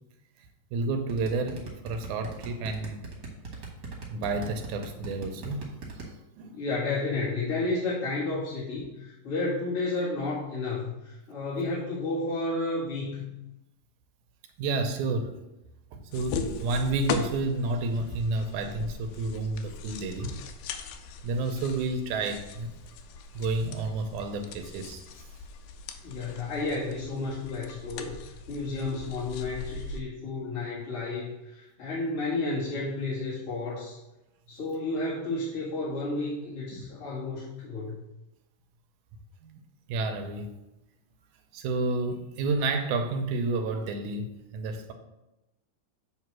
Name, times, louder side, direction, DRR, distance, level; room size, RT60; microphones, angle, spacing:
voice 1, 0.7-3.0 4.1-5.7 6.0-6.6 14.6-15.3 15.9-20.4 21.2-22.7 23.3-25.3 36.7-36.8 39.4-39.6 39.9-40.5 41.5-44.9, right 3 dB, 80° right, 5 dB, 1.9 m, -30 dB
sound 1, 1.1-6.1, right 4 dB, 55° right, 1.3 m, -39 dB
voice 2, 6.5-13.4 26.0-34.0 34.5-38.0, left 2 dB, 45° left, -12 dB, 2.5 m, -32 dB
sound 2, 16.1-30.0, left 5 dB, 85° left, 1.7 m, -39 dB
7.7 x 3.1 x 6.0 m, 0.95 s
omnidirectional pair, 4.0 m